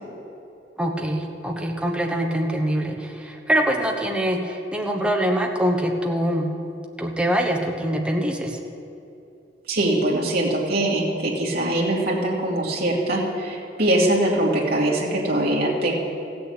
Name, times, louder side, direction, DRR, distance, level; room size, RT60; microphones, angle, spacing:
voice 1, 0.8-6.5 7.0-8.6, equal, 5° right, 1 dB, 1.2 m, -24 dB
voice 2, 9.7-15.9, right 1 dB, 60° right, -3 dB, 2.6 m, -22 dB
15.5 x 6.9 x 8.4 m, 2.7 s
head